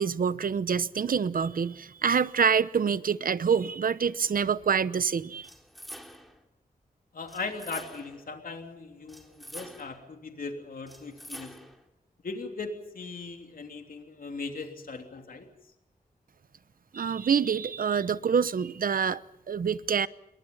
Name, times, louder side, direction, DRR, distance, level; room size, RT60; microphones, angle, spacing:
voice 1, 0.0-5.5 16.9-19.2 19.5-20.1, right 6 dB, 65° right, 0.9 m, -26 dB
sound 1, 5.4-6.4 7.3-8.3 9.1-10.1 10.9-11.8, equal, ahead, 3.1 m, -46 dB
voice 2, 7.1-11.5 12.2-15.5, left 4 dB, 65° left, 3.2 m, -38 dB
28.5 x 23.0 x 5.6 m
wide cardioid pair, 115°, 15 cm